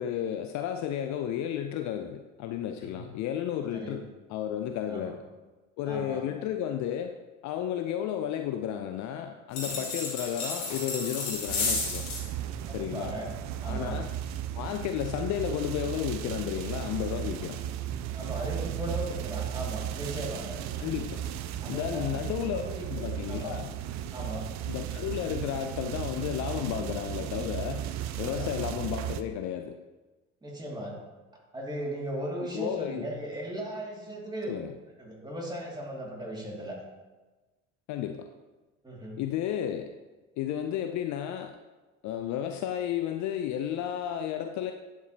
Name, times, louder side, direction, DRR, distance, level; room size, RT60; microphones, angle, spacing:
voice 1, 0.0-5.2 5.8-7.1 7.4-12.1 12.7-13.1 13.7-14.1 14.6-17.6 20.8-21.2 21.7-22.6 22.9-23.7 24.7-27.9 28.2-29.8 32.5-33.1 34.5-34.7 37.9-38.3 39.2-39.9 40.4-41.6 42.0-44.7, left 10 dB, 50° left, 7 dB, 0.5 m, -32 dB
voice 2, 5.8-6.2 12.7-13.3 13.6-14.0 18.1-20.6 21.6-22.9 23.3-23.5 24.1-24.5 28.2-28.5 30.4-31.0 31.5-34.6 35.0-36.8 38.8-39.2, right 1 dB, 10° right, -3 dB, 2.3 m, -37 dB
sound 1, 9.5-12.3, left 3 dB, 70° left, 2.2 m, -32 dB
sound 2, 11.5-29.2, right 11 dB, 45° right, 0.5 m, -35 dB
10.5 x 4.8 x 2.8 m, 1.2 s
hypercardioid pair, 60°, 38 cm